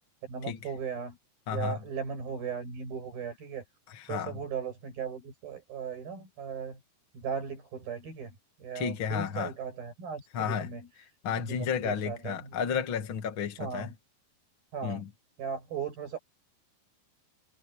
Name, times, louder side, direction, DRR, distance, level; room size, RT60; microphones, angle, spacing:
voice 1, 0.2-1.2 1.5-3.6 4.1-6.8 7.1-8.3 8.6-10.9 11.4-12.4 13.6-13.9 14.7-15.0 15.4-16.2, right 6 dB, 60° right, 8.9 m, -37 dB
voice 2, 1.5-1.8 3.9-4.4 8.7-9.5 10.3-10.7 11.2-13.9 14.8-15.1, left 7 dB, 50° left, 1.6 m, -32 dB
omnidirectional pair, 4.9 m